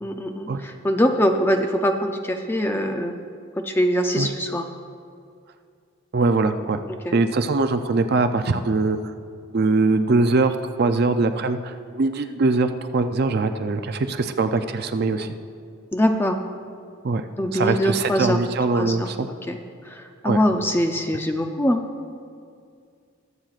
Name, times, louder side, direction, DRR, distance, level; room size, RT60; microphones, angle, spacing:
voice 1, 0.0-3.1 3.6-4.7 7.0-7.1 15.9-16.4 17.4-18.4 18.7-19.1 19.5-19.6 19.9-21.8, equal, 10° left, 5 dB, 0.4 m, -23 dB
voice 2, 6.1-6.8 7.1-9.0 9.5-15.3 17.0-17.2 17.5-19.3 20.2-20.4, right 3 dB, 45° right, 8 dB, 0.4 m, -22 dB
21.5 x 7.6 x 2.4 m, 2.2 s
head